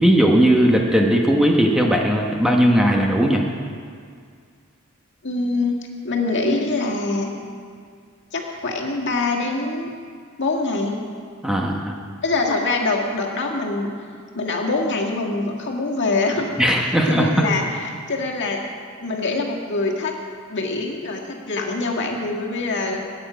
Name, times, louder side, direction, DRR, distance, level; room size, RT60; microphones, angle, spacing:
voice 1, 0.0-3.4 11.4-11.9 16.6-17.5, equal, 5° right, 0 dB, 1.0 m, -17 dB
voice 2, 5.2-7.3 8.3-10.0 10.4-11.0 12.2-13.9 14.3-16.5 17.1-18.6 19.0-20.1 20.5-23.0, left 3 dB, 55° left, 0 dB, 1.8 m, -24 dB
21.5 x 9.1 x 5.1 m, 2.1 s
head